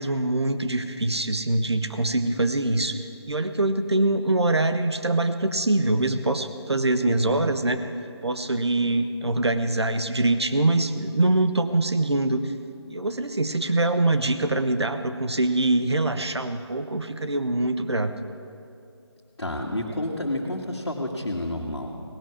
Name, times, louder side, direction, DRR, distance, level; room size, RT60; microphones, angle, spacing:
voice 1, 0.0-3.0 3.3-7.8 8.2-12.4 12.9-18.1, right 2 dB, 70° right, 9 dB, 1.2 m, -24 dB
voice 2, 7.0-7.4 19.4-21.9, left 1 dB, 65° left, -3 dB, 1.9 m, -30 dB
17.5 x 11.0 x 7.1 m, 2.6 s
figure-of-eight pair, 160°, 14 cm